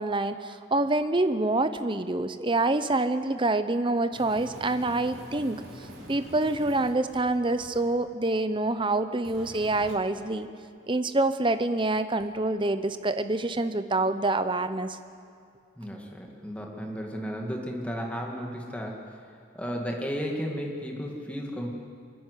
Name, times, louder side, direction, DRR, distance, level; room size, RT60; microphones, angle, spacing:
voice 1, 0.0-5.6 6.1-10.5 10.9-15.0, right 2 dB, 25° right, 11 dB, 0.7 m, -26 dB
sound 1, 4.1-7.8 9.2-9.9 12.2-12.3, equal, 65° right, 4.2 m, -45 dB
voice 2, 15.8-19.2 19.5-21.7, equal, 5° left, 0 dB, 2.1 m, -34 dB
27.5 x 10.5 x 9.6 m, 2.3 s
head